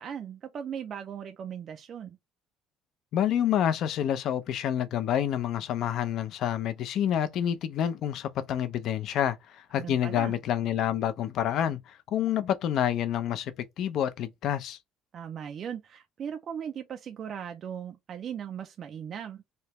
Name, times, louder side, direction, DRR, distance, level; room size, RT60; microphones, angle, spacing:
voice 1, 0.0-2.2 9.7-10.3 15.1-19.4, right 8 dB, 35° right, 0.4 m, -38 dB
voice 2, 3.1-14.8, left 10 dB, 45° left, 0.5 m, -28 dB
3.2 x 2.8 x 3.0 m
cardioid pair, 175°, 0 cm